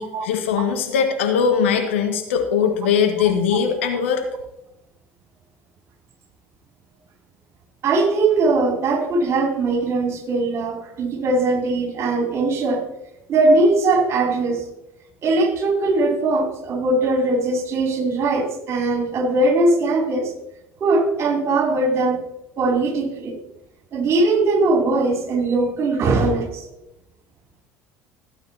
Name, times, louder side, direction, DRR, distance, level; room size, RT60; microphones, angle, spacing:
voice 1, 0.0-4.2, left 7 dB, 75° left, 4 dB, 1.6 m, -20 dB
voice 2, 7.8-12.8 13.3-14.7 15.2-20.3 20.8-22.2 22.6-23.4 23.9-26.7, right 2 dB, 45° right, 2 dB, 3.0 m, -20 dB
15.5 x 8.8 x 2.8 m, 0.87 s
hypercardioid pair, 65°, 7 cm